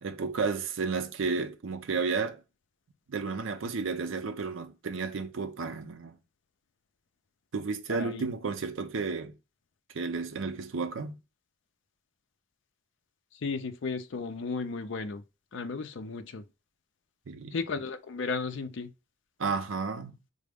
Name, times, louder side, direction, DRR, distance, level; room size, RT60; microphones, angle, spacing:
voice 1, 0.0-2.4 3.1-6.2 7.5-9.3 9.9-11.1 17.3-17.5 19.4-20.2, right 4 dB, 70° right, 0.5 m, -32 dB
voice 2, 7.9-8.3 13.3-15.2 15.5-16.5 17.5-18.9, left 4 dB, 60° left, 0.5 m, -34 dB
3.8 x 2.1 x 3.4 m
head